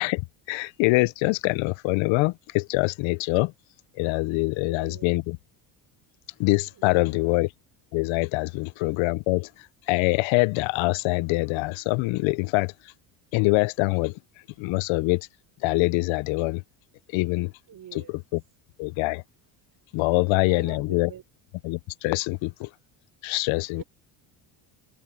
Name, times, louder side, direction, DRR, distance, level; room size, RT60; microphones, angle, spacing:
voice 1, 0.0-3.5 4.0-5.4 6.4-7.5 7.9-9.5 9.9-12.7 13.3-14.2 14.6-15.3 15.6-16.6 17.1-17.5 18.3-18.4 18.8-19.2 19.9-21.1 21.6-22.7 23.2-23.8, left 24 dB, 70° left, 0.6 m, -24 dB
voice 2, 4.5-5.1 6.7-7.3 17.7-18.1 20.1-21.2 23.7-23.8, right 10 dB, 45° right, 4.7 m, -46 dB
cardioid pair, 115°, 48 cm